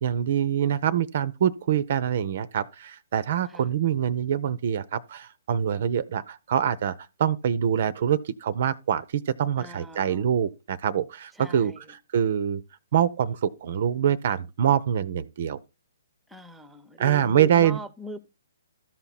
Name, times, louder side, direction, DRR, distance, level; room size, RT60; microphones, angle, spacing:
voice 1, 0.0-12.6 12.9-15.6 17.0-17.8, right 9 dB, 50° right, 0.5 m, -25 dB
voice 2, 9.6-10.3 11.4-11.8 16.3-18.2, right 2 dB, 5° right, 0.7 m, -41 dB
13.5 x 5.8 x 4.2 m
figure-of-eight pair, 130°, 0 cm